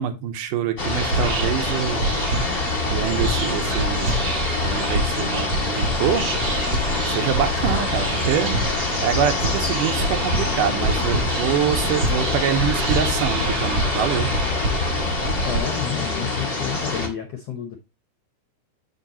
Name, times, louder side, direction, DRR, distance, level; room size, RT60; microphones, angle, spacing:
voice 1, 0.0-2.1 2.9-4.2 4.6-6.2 7.1-8.6 9.0-14.3, right 9 dB, 80° right, 2.2 m, -25 dB
sound 1, 0.8-17.1, left 3 dB, 35° left, 0.9 m, -25 dB
Whispering, 0.9-15.6, right 2 dB, 50° right, 1.8 m, -27 dB
voice 2, 15.4-17.8, left 10 dB, 75° left, 1.4 m, -30 dB
7.0 x 6.6 x 2.8 m
omnidirectional pair, 4.0 m